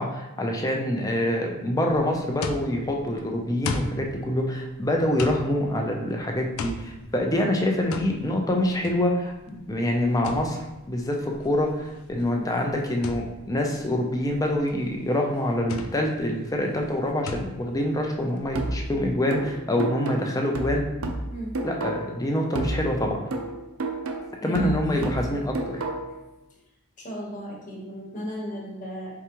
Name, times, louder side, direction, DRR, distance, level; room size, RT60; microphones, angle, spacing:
voice 1, 0.0-10.6 10.9-20.9 21.6-23.3 24.4-25.8, left 1 dB, 15° left, 1 dB, 0.5 m, -26 dB
sound 1, 1.9-19.1, left 4 dB, 75° left, 0.4 m, -38 dB
sound 2, 18.6-22.2 22.6-26.2, right 2 dB, 75° right, 0.5 m, -31 dB
voice 2, 21.3-21.6 24.4-25.1 27.0-29.1, equal, 35° left, -2 dB, 1.1 m, -35 dB
4.6 x 3.5 x 3.0 m, 1.0 s
head